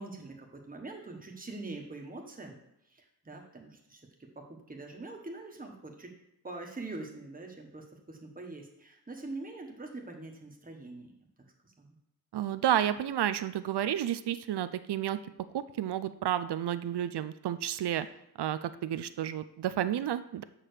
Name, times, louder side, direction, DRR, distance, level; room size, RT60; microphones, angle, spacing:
voice 1, 0.0-2.6 2.9-6.1 6.4-11.1 11.6-12.0, right 2 dB, 20° right, 1 dB, 1.3 m, -44 dB
voice 2, 12.3-15.2 15.5-18.1 18.4-20.4, right 11 dB, 80° right, 12 dB, 0.5 m, -31 dB
7.5 x 4.7 x 6.6 m, 0.81 s
wide cardioid pair, 120°, 40 cm